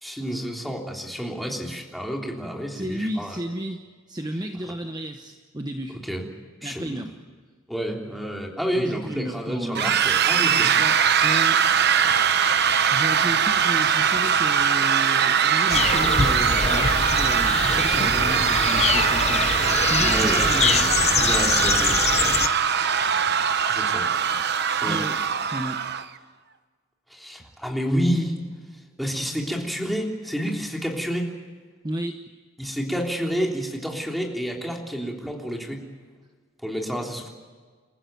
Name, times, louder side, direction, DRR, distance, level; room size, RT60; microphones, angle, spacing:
voice 1, 0.0-3.4 6.1-6.2 6.6-7.0 7.7-10.7 20.0-20.5 21.1-22.0 23.7-24.1 24.8-25.0 27.1-28.4 29.0-31.3 32.6-35.8 36.6-37.3, equal, ahead, -1 dB, 3.4 m, -29 dB
voice 2, 2.7-3.8 4.1-6.0 6.6-7.1 8.7-10.1 10.8-10.9 11.2-11.6 12.9-19.5 19.9-21.2 24.9-25.2 25.4-25.8 31.8-32.1, right 1 dB, 20° right, 6 dB, 1.0 m, -32 dB
sound 1, 9.8-26.1, right 7 dB, 55° right, 1.0 m, -21 dB
sound 2, 15.7-22.5, left 6 dB, 30° left, 0.7 m, -24 dB
28.5 x 15.0 x 9.3 m, 1.5 s
head